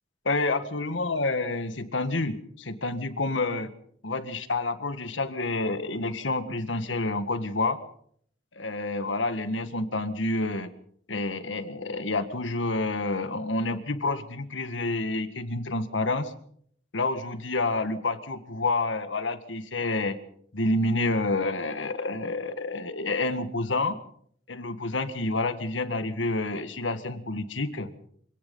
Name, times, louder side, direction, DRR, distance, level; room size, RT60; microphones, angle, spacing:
voice 1, 0.3-3.7 4.0-7.8 8.6-10.7 11.1-16.3 16.9-20.2 20.5-24.0 24.5-27.9, left 2 dB, 80° left, 11 dB, 1.8 m, -28 dB
26.0 x 18.0 x 5.5 m, 0.63 s
head